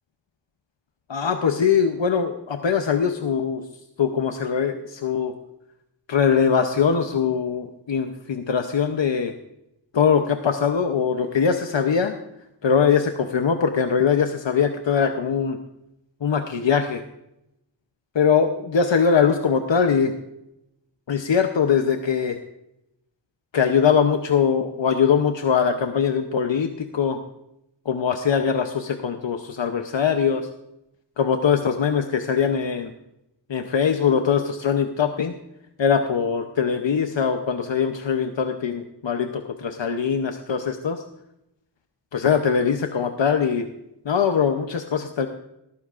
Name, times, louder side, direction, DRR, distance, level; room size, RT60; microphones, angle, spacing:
voice 1, 1.1-3.6 4.0-5.3 6.1-9.3 9.9-12.1 12.6-15.6 16.2-17.0 18.1-20.1 21.1-22.4 23.5-27.2 27.9-30.4 31.2-32.9 33.5-35.3 35.8-41.0 42.1-43.7 44.1-45.3, left 6 dB, 80° left, 6 dB, 0.8 m, -22 dB
17.0 x 14.5 x 2.5 m, 0.86 s
wide cardioid pair, 60°, 44 cm